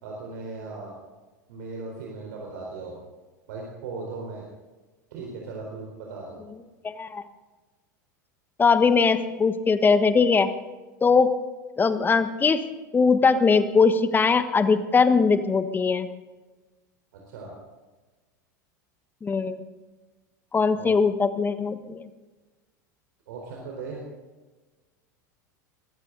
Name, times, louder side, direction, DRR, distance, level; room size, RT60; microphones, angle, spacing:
voice 1, 0.0-1.0 1.5-3.0 3.5-4.5 5.1-6.4 17.1-17.5 20.7-20.9 23.3-24.0, right 3 dB, 65° right, -1 dB, 4.3 m, -37 dB
voice 2, 6.8-7.2 8.6-10.5 11.0-11.3 11.8-12.6 12.9-16.1 19.2-19.6 20.5-22.0, left 5 dB, 20° left, 11 dB, 1.3 m, -21 dB
23.0 x 15.0 x 4.0 m, 1.2 s
hypercardioid pair, 85°, 10 cm